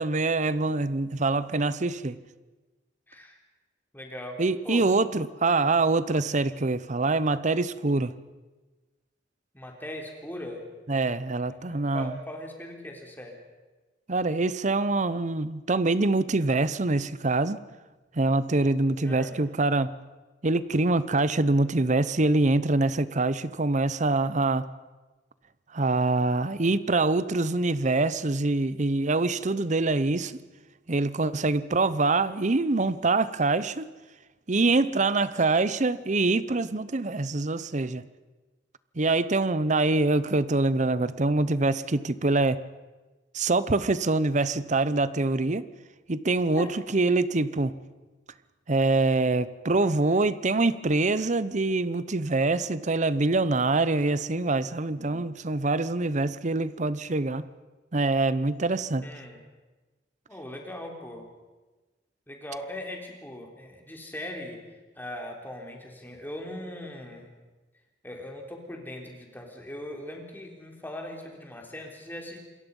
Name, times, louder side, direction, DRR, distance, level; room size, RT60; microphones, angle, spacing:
voice 1, 0.0-2.2 4.4-8.1 10.9-12.1 14.1-17.6 18.2-19.9 20.4-24.7 25.7-30.4 30.9-33.9 34.5-38.0 39.0-42.6 43.3-45.6 46.1-47.8 48.7-57.5 57.9-59.1, right 3 dB, 40° right, 16 dB, 0.8 m, -25 dB
voice 2, 3.1-3.4 3.9-4.4 4.6-4.9 5.4-5.7 9.5-10.7 11.4-13.4 19.0-19.4 46.6-46.7 59.0-59.4 60.3-61.3 62.3-64.6 65.0-67.4 68.0-72.4, left 1 dB, 10° left, 1 dB, 3.7 m, -40 dB
27.5 x 22.0 x 5.5 m, 1.2 s
head